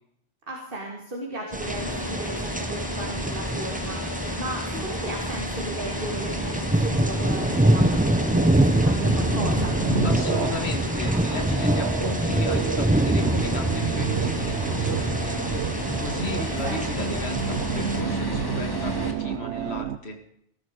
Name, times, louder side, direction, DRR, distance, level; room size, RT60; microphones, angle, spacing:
voice 1, 0.5-9.8 16.4-17.2, right 2 dB, 55° right, -1 dB, 2.8 m, -35 dB
sound 1, 1.5-18.0, right 1 dB, 10° right, 0.7 m, -26 dB
sound 2, 1.6-19.1, left 1 dB, 20° left, 2.1 m, -32 dB
sound 3, 4.1-20.0, right 8 dB, 80° right, 1.1 m, -31 dB
voice 2, 10.0-20.2, left 3 dB, 70° left, 5 dB, 2.4 m, -35 dB
18.5 x 12.5 x 5.1 m, 0.73 s
omnidirectional pair, 1.1 m